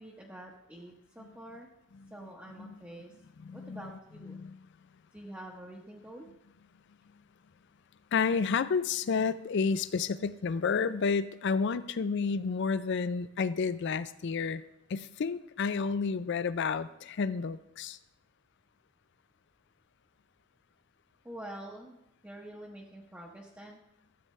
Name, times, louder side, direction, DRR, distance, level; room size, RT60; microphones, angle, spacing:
voice 1, 0.0-1.7 2.1-3.2 3.5-4.4 5.1-6.3 21.2-23.8, right 1 dB, 10° right, -4 dB, 0.9 m, -47 dB
voice 2, 3.4-3.8 4.3-4.6 8.1-14.6 14.9-18.0, left 5 dB, 55° left, 14 dB, 0.4 m, -30 dB
13.0 x 7.9 x 3.2 m, 0.84 s
head